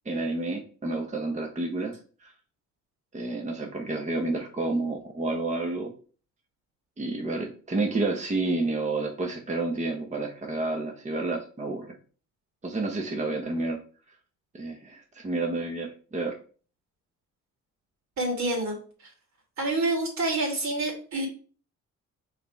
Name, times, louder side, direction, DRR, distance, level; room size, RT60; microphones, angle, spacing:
voice 1, 0.0-2.3 3.1-5.9 7.0-12.0 12.6-13.8 14.5-16.4, right 2 dB, 25° right, 3 dB, 0.9 m, -30 dB
voice 2, 18.2-18.8 19.6-21.3, right 2 dB, 65° right, 1 dB, 2.8 m, -27 dB
5.0 x 4.1 x 4.5 m, 0.40 s
cardioid pair, 90°, 30 cm